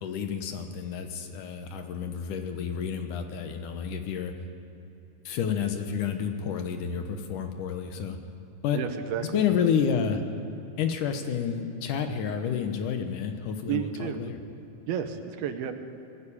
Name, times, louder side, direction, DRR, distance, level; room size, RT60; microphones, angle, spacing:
voice 1, 0.0-4.3 5.3-8.2 8.6-8.8 9.3-10.2 10.8-14.4, left 7 dB, 70° left, 6 dB, 2.4 m, -30 dB
voice 2, 8.7-9.4 13.7-14.3 14.9-15.7, right 9 dB, 85° right, 8 dB, 3.0 m, -31 dB
20.5 x 14.5 x 8.7 m, 2.9 s
omnidirectional pair, 4.2 m